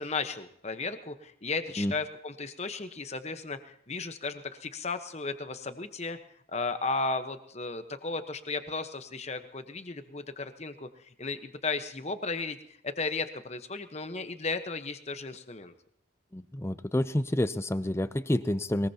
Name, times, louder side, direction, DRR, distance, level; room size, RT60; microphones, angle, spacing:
voice 1, 0.0-6.2 6.5-12.6 12.8-15.7, left 3 dB, 35° left, 9 dB, 1.1 m, -35 dB
voice 2, 16.3-18.9, left 1 dB, 15° left, 13 dB, 0.5 m, -28 dB
22.0 x 20.5 x 2.9 m, 0.69 s
head